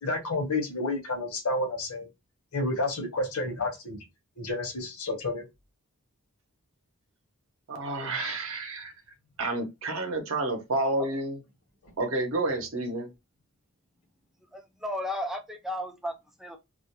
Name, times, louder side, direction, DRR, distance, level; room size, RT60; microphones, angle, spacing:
voice 1, 0.0-2.1 2.5-4.0 4.4-5.5 11.8-11.9, left 2 dB, 75° left, 0.8 m, -30 dB
voice 2, 7.7-8.9 9.4-11.4 12.0-13.1, right 2 dB, 60° right, 0.7 m, -30 dB
voice 3, 14.5-16.6, left 1 dB, ahead, 0.3 m, -34 dB
2.4 x 2.1 x 2.8 m
head